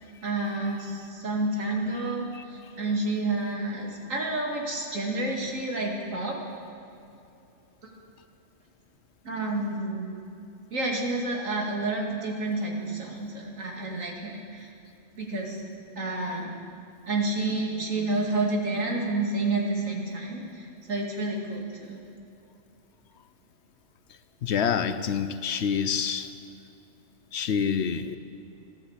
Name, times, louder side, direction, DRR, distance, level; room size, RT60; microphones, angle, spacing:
voice 1, 0.2-6.4 9.2-10.2 10.7-14.7 15.2-15.6 16.0-16.6 17.1-22.0, right 2 dB, 85° right, 0 dB, 2.6 m, -29 dB
voice 2, 24.4-26.3 27.3-28.2, left 7 dB, 65° left, 12 dB, 0.9 m, -27 dB
14.0 x 11.5 x 8.0 m, 2.8 s
omnidirectional pair, 1.3 m